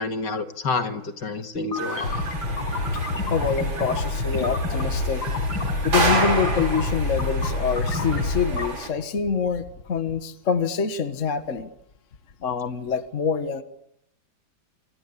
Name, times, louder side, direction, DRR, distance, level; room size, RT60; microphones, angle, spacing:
voice 1, 0.0-2.2, left 4 dB, 65° left, 7 dB, 2.6 m, -29 dB
sound 1, 1.5-8.7, left 2 dB, 90° left, 5.6 m, -27 dB
sound 2, 1.8-8.9, right 3 dB, 80° right, 5.1 m, -30 dB
voice 2, 3.2-5.2 5.8-11.7 12.4-13.6, left 6 dB, 40° left, 9 dB, 1.7 m, -26 dB
28.0 x 24.0 x 8.4 m, 0.77 s
omnidirectional pair, 2.1 m